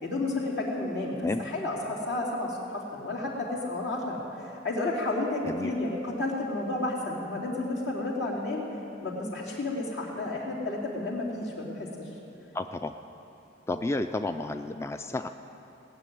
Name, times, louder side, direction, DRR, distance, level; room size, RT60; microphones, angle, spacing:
voice 1, 0.0-8.6 9.0-12.1, left 2 dB, 70° left, -3 dB, 2.8 m, -31 dB
voice 2, 12.5-12.9 13.7-15.3, left 2 dB, 15° left, 8 dB, 0.3 m, -31 dB
18.0 x 6.8 x 9.3 m, 2.8 s
head